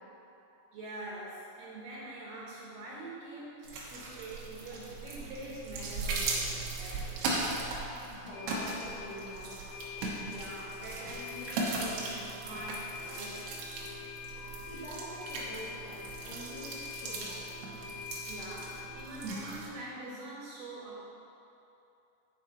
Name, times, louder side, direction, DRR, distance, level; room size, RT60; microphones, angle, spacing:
voice 1, 0.5-7.4 10.2-13.6 18.3-21.0, right 1 dB, 70° right, -6 dB, 2.5 m, -45 dB
sound 1, 3.6-19.7, right 3 dB, 85° right, 3.2 m, -38 dB
sound 2, 7.0-7.1 7.3-7.4 7.8-7.9 8.3-19.0, left 6 dB, 65° left, 2.3 m, -45 dB
voice 2, 8.1-9.5 14.6-17.4, equal, 80° left, -10 dB, 3.4 m, -46 dB
10.0 x 5.0 x 4.2 m, 2.8 s
omnidirectional pair, 4.6 m